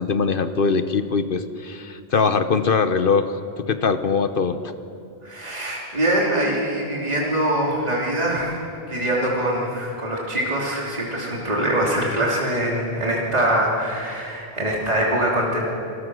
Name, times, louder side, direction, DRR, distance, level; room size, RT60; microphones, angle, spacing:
voice 1, 0.0-4.6, left 5 dB, 60° left, 10 dB, 1.1 m, -22 dB
voice 2, 5.2-15.7, right 1 dB, 40° right, -3 dB, 3.3 m, -23 dB
27.0 x 20.0 x 6.3 m, 2.6 s
omnidirectional pair, 1.1 m